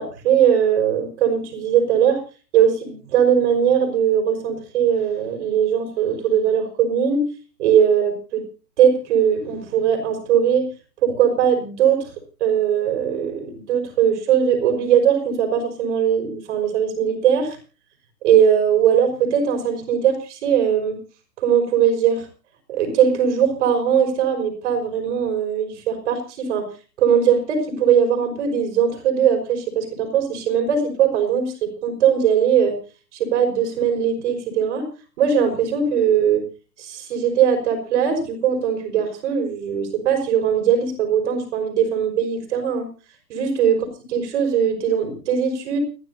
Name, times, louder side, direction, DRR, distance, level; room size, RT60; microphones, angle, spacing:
voice 1, 0.0-2.2 2.5-7.2 7.6-8.4 8.8-10.7 11.0-12.1 12.4-17.6 18.2-21.0 21.4-22.3 22.7-26.7 27.0-32.8 33.1-34.9 35.2-36.4 36.8-42.9 43.3-43.8 44.1-45.8, right 8 dB, 45° right, 5 dB, 5.6 m, -20 dB
29.5 x 11.0 x 2.8 m, 0.34 s
figure-of-eight pair, 135°, 50 cm